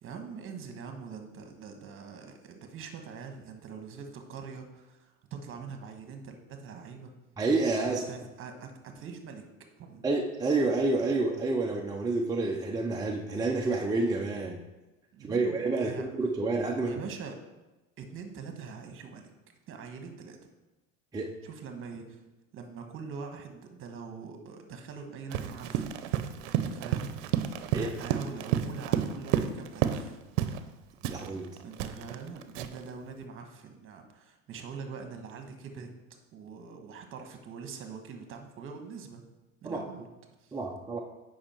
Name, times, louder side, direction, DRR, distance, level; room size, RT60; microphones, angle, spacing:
voice 1, 0.0-7.1 7.9-9.4 9.8-10.1 15.1-16.1 16.8-17.4 18.0-19.3 19.7-20.4 21.4-22.2 22.5-27.1 27.7-30.2 31.6-35.9 36.3-39.2 39.6-40.1 40.4-40.6, right 5 dB, 30° right, 5 dB, 1.3 m, -43 dB
voice 2, 7.4-8.0 10.0-14.6 15.2-17.0 21.1-21.3 27.7-27.9 31.0-31.5 39.6-39.8 40.5-41.0, right 3 dB, 10° right, 0 dB, 0.5 m, -29 dB
Run, 25.3-30.1 30.4-30.6 31.0-32.9, right 10 dB, 65° right, 0.8 m, -31 dB
8.6 x 5.6 x 4.4 m, 1.0 s
supercardioid pair, 120°, 39 cm